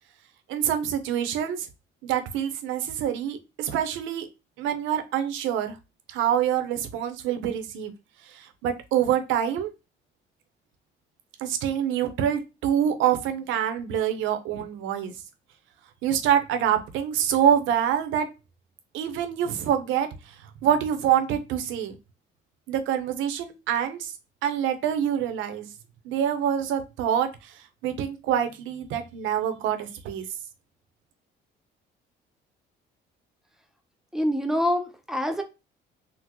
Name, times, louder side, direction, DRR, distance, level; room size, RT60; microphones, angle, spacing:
voice 1, 0.5-1.7 2.0-4.3 4.6-5.8 6.1-7.9 8.3-9.7 11.4-15.1 16.0-18.3 18.9-20.1 20.6-21.9 22.7-24.1 24.4-25.7 26.0-30.2, right 9 dB, 80° right, 8 dB, 0.6 m, -26 dB
voice 2, 34.1-35.4, left 1 dB, ahead, 5 dB, 0.6 m, -25 dB
3.7 x 2.0 x 2.9 m, 0.27 s
cardioid pair, 105°, 20 cm